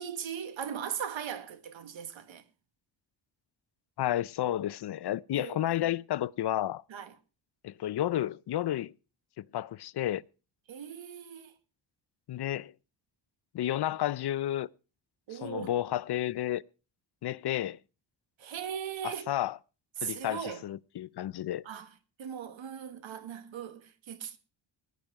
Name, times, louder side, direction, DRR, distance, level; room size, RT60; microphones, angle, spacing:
voice 1, 0.0-2.4 5.3-5.9 6.9-7.1 10.7-11.5 15.3-15.7 18.4-19.3 20.0-20.6 21.7-21.9 22.2-24.4, right 8 dB, 85° right, 1.7 m, -39 dB
voice 2, 4.0-6.8 7.6-8.9 9.4-10.2 12.3-12.7 13.5-14.7 15.3-16.6 17.2-17.8 19.0-19.6 20.0-21.6, left 12 dB, 60° left, 0.6 m, -31 dB
19.0 x 10.5 x 4.7 m
cardioid pair, 115°, 45 cm